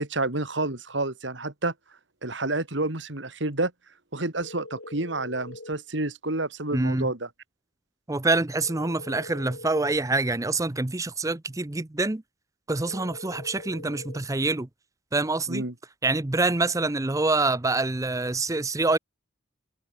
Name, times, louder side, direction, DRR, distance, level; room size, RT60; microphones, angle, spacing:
voice 1, 0.0-1.7 2.2-3.7 4.1-7.3 15.5-15.7, right 2 dB, 65° right, 2.9 m, -29 dB
sound 1, 4.4-5.8 8.6-10.0 12.9-14.3, left 2 dB, 70° left, 3.7 m, -43 dB
voice 2, 6.7-7.1 8.1-12.2 12.7-14.7 15.1-15.6 16.0-19.0, right 2 dB, 15° right, 0.6 m, -26 dB
head